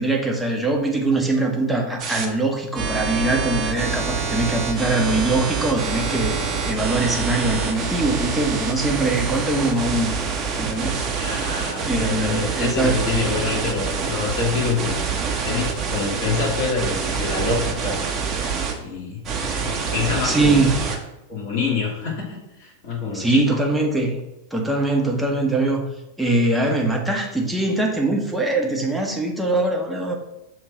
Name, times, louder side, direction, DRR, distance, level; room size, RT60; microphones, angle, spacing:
voice 1, 0.0-10.2 10.6-11.1 11.8-13.0 20.2-20.8 23.1-24.1 24.5-25.8 26.2-30.1, right 2 dB, 5° right, 0 dB, 1.0 m, -22 dB
sound 1, 2.0-2.2 2.7-18.7 19.2-21.0, right 5 dB, 30° right, 0.9 m, -26 dB
voice 2, 11.2-14.9 15.4-18.2 18.7-19.2 19.6-20.7 21.3-23.6, left 4 dB, 45° left, -4 dB, 2.3 m, -26 dB
6.6 x 3.1 x 4.8 m, 0.89 s
figure-of-eight pair, 90°, 0 cm